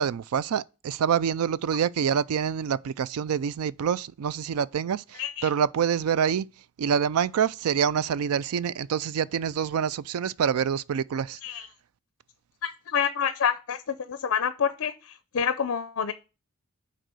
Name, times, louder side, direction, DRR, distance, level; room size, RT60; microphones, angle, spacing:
voice 1, 0.0-6.5 6.8-11.4, right 7 dB, 80° right, 0.4 m, -26 dB
voice 2, 5.1-5.5 11.4-11.7 12.6-16.1, left 7 dB, 60° left, 0.5 m, -28 dB
6.6 x 4.2 x 6.1 m
head